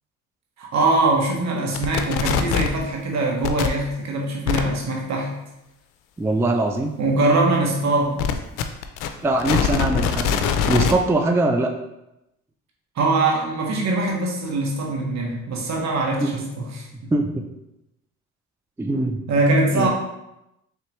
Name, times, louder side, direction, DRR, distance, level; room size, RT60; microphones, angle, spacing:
voice 1, 0.6-5.3 7.0-8.3 13.0-17.1 19.3-19.9, right 2 dB, 60° right, -1 dB, 1.3 m, -22 dB
sound 1, 1.7-2.8 3.4-3.7 4.5-4.6 8.2-10.9, left 7 dB, 85° left, 0.5 m, -22 dB
voice 2, 6.2-7.0 9.2-11.7 16.2-16.4 17.1-17.5 18.8-19.2 19.7-19.9, right 2 dB, 10° right, 4 dB, 0.3 m, -22 dB
4.5 x 3.4 x 3.0 m, 0.90 s
supercardioid pair, 80°, 31 cm